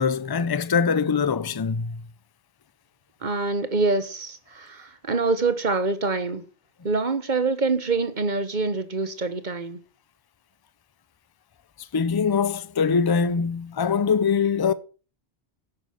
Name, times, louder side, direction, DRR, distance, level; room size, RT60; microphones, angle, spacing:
voice 1, 0.0-2.0 11.9-14.7, left 6 dB, 25° left, 0.5 m, -23 dB
voice 2, 3.2-6.4 6.8-9.8, right 3 dB, 40° right, 1.3 m, -25 dB
10.5 x 8.9 x 6.4 m
omnidirectional pair, 1.2 m